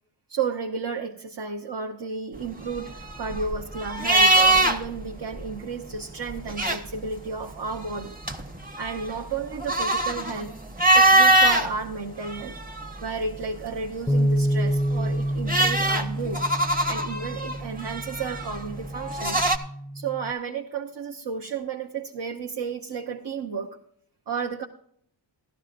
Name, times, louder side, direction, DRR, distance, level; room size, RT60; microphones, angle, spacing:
voice 1, 0.3-8.2 8.8-10.6 10.9-12.6 13.0-16.4 16.9-19.5 19.9-23.8 24.3-24.7, right 5 dB, 65° right, 1 dB, 1.0 m, -32 dB
sound 1, 2.5-5.0 5.3-5.5 6.3-7.2 7.7-11.7 12.2-13.2 14.7-19.6, right 2 dB, 20° right, 1.0 m, -22 dB
Bass guitar, 14.1-20.3, equal, 5° left, 0.4 m, -28 dB
16.5 x 13.0 x 2.5 m, 0.66 s
wide cardioid pair, 120°, 45 cm